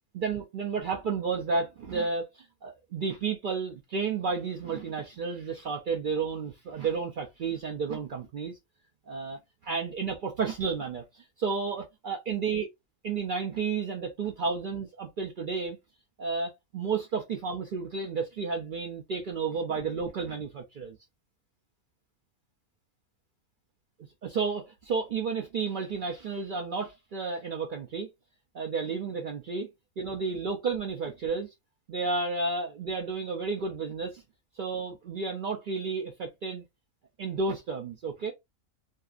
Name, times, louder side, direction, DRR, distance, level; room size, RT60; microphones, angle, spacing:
voice 1, 0.1-8.6 9.1-12.7 13.0-15.8 16.2-21.0 24.2-28.1 28.5-29.7 30.0-31.5 31.9-34.2 34.6-36.6 37.2-38.3, right 4 dB, 75° right, 0.4 m, -32 dB
2.6 x 2.4 x 2.3 m
omnidirectional pair, 1.4 m